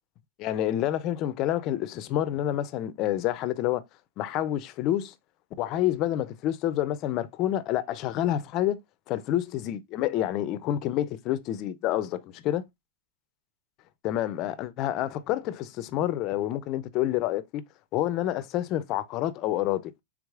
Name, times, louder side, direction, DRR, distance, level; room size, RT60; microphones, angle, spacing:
voice 1, 0.4-3.8 4.2-5.1 5.6-8.8 9.1-12.6 14.0-17.6 17.9-19.9, left 12 dB, 30° left, 0.4 m, -28 dB
4.7 x 3.5 x 2.3 m
supercardioid pair, 160°, 0 cm